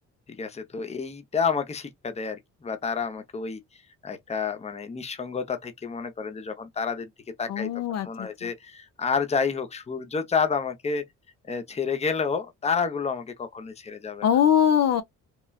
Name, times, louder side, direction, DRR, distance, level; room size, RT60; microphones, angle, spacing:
voice 1, 0.3-3.6 4.0-7.1 7.4-7.7 8.0-11.0 11.5-14.2, left 5 dB, 20° left, 0.7 m, -29 dB
voice 2, 7.5-8.5 14.2-15.0, left 9 dB, 60° left, 0.7 m, -22 dB
3.1 x 2.2 x 2.3 m
cardioid pair, 90°, 30 cm